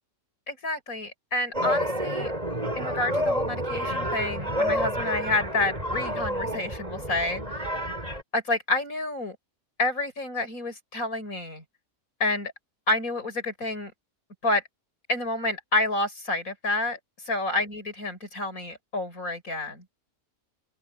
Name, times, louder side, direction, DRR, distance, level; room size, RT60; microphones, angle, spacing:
voice 1, 0.5-2.3 2.8-7.9 8.3-9.4 9.8-11.6 12.2-12.5 12.9-13.9 14.4-14.6 15.1-17.0 17.2-19.8, left 2 dB, 75° left, 6.1 m, -29 dB
sound 1, 1.5-8.2, equal, 25° right, 6.3 m, -29 dB
open air
omnidirectional pair, 1.5 m